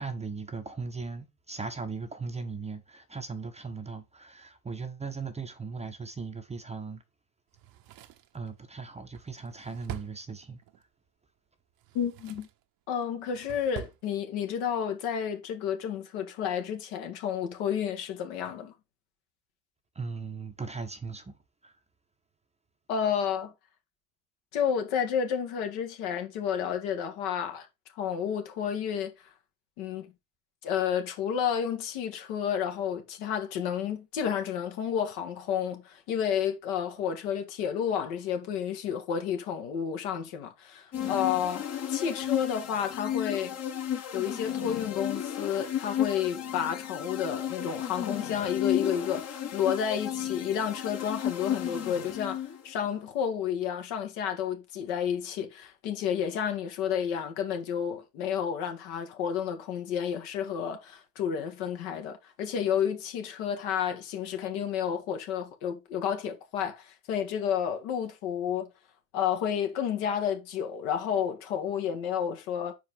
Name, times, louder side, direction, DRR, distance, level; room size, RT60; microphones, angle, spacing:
voice 1, 0.0-7.0 8.3-10.6 19.9-21.7, right 4 dB, 15° right, 0.9 m, -38 dB
Drawer open or close, 7.5-10.8 11.7-12.6 13.0-14.0 14.3-14.4, right 10 dB, 45° right, 0.9 m, -45 dB
voice 2, 11.9-12.5 12.9-18.7 22.9-23.5 24.5-27.7 27.9-29.3 29.8-30.1 30.6-43.6 44.1-68.7 69.1-72.7, left 8 dB, 60° left, 1.7 m, -31 dB
sound 1, 40.9-52.7, left 10 dB, 35° left, 1.3 m, -33 dB
4.8 x 4.7 x 5.3 m
hypercardioid pair, 80°, 47 cm